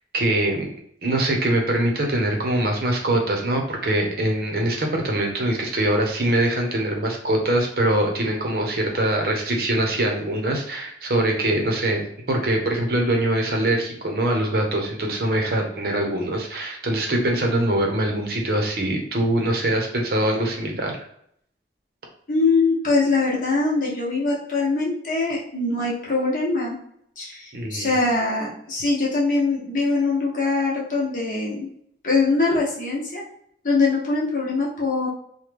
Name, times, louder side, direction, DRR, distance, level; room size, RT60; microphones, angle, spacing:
voice 1, 0.1-0.7 1.0-21.0 27.5-28.0, right 1 dB, 55° right, 1 dB, 0.7 m, -23 dB
voice 2, 22.3-26.8 27.2-31.7 32.0-33.2 33.6-35.1, left 3 dB, 45° left, -5 dB, 0.9 m, -22 dB
3.1 x 2.2 x 3.3 m, 0.68 s
head